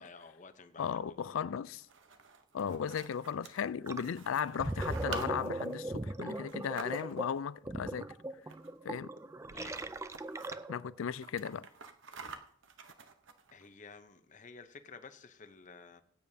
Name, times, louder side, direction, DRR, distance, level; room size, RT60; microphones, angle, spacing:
voice 1, 0.0-1.3 9.5-9.8 13.5-16.0, left 4 dB, 40° left, 0.8 m, -52 dB
voice 2, 0.8-1.9 2.5-8.1 8.8-9.1 10.7-11.7, left 7 dB, 75° left, 0.4 m, -36 dB
sound 1, 1.7-7.4 8.4-8.9 9.2-9.3 9.5-10.6 11.0-13.7, right 5 dB, 65° right, 0.9 m, -49 dB
Gurgling, 3.9-4.1 4.4-10.9, right 1 dB, 15° right, 0.4 m, -39 dB
18.5 x 9.1 x 2.8 m
head